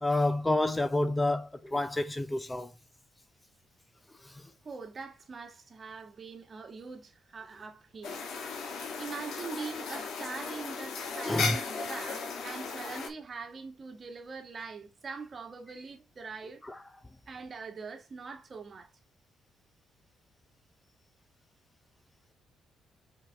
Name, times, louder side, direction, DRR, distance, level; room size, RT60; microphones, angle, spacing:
voice 1, 0.0-2.7 11.3-11.6, left 2 dB, 15° left, 0.7 m, -28 dB
voice 2, 4.6-8.2 9.0-16.6 17.3-18.9, right 4 dB, 40° right, 1.8 m, -43 dB
sound 1, 8.0-13.1, left 4 dB, 70° left, 2.6 m, -36 dB
5.7 x 5.1 x 3.6 m
cardioid pair, 90°, 0 cm